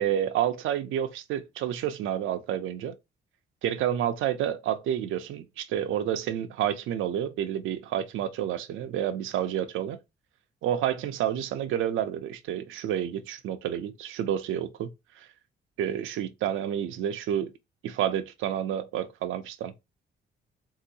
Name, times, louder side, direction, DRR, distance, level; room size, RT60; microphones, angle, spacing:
voice 1, 0.0-2.9 3.6-10.0 10.6-14.9 15.8-17.5 17.8-19.7, right 10 dB, 85° right, 0.6 m, -29 dB
3.4 x 2.8 x 2.8 m
cardioid pair, 90°, 20 cm